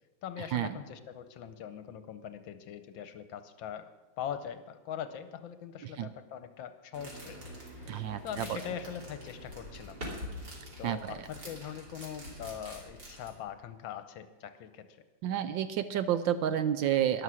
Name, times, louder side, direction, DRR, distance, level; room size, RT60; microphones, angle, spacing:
voice 1, 0.2-3.9 4.2-7.4 7.8-10.0 10.8-15.0, left 9 dB, 70° left, 10 dB, 1.4 m, -42 dB
sound 1, 6.9-13.4, equal, 50° right, 3.6 m, -45 dB
voice 2, 7.9-8.2 8.5-8.6 10.8-11.2 15.2-17.2, right 10 dB, 70° right, 11 dB, 1.2 m, -30 dB
13.0 x 11.0 x 6.3 m, 1.2 s
omnidirectional pair, 2.4 m